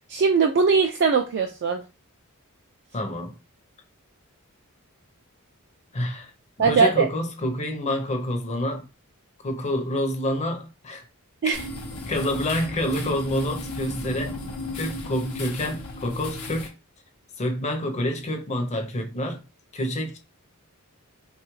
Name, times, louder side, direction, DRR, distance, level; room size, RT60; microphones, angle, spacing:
voice 1, 0.1-1.8 6.6-7.1 11.4-11.6, right 5 dB, 50° right, 0.3 m, -20 dB
voice 2, 2.9-3.4 5.9-6.3 6.6-8.9 9.4-11.0 12.1-14.4 14.7-16.7 17.4-19.4 19.7-20.2, left 1 dB, 30° left, 0.6 m, -27 dB
sound 1, 11.5-16.7, left 1 dB, 75° left, 0.8 m, -35 dB
3.1 x 2.3 x 3.0 m
head